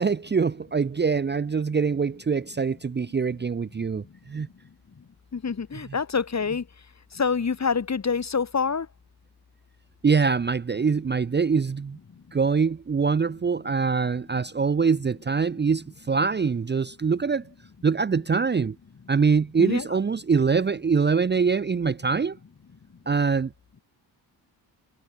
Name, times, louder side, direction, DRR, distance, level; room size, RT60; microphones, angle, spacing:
voice 1, 0.0-4.5 10.0-12.0 12.3-17.4 17.8-18.7 19.1-22.4 23.1-23.5, right 5 dB, 25° right, 0.7 m, -24 dB
voice 2, 5.3-6.7 7.1-8.9 19.6-20.0, left 5 dB, 40° left, 2.9 m, -26 dB
cardioid pair, 80°, 42 cm